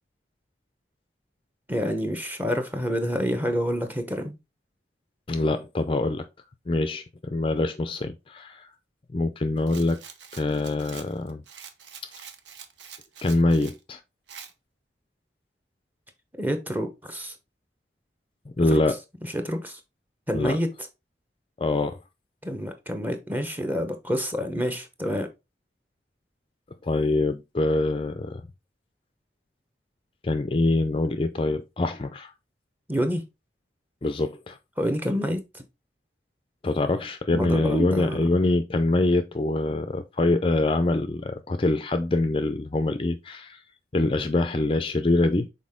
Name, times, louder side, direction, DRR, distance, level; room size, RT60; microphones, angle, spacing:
voice 1, 1.7-4.4 16.4-17.3 18.7-18.8 19.3-19.8 20.3-20.7 22.4-25.3 32.9-33.2 34.8-35.6 37.3-38.3, equal, 10° right, 1.0 m, -28 dB
voice 2, 5.3-6.3 6.7-8.7 9.1-10.0 10.3-11.4 13.2-14.0 18.6-19.0 20.3-20.6 21.6-22.0 26.8-28.4 30.2-32.3 34.0-34.6 36.6-43.6 43.9-45.5, left 2 dB, 30° left, 0.4 m, -24 dB
Rattle, 9.7-13.8 14.3-14.5, right 7 dB, 85° right, 0.9 m, -45 dB
6.3 x 4.2 x 3.6 m
head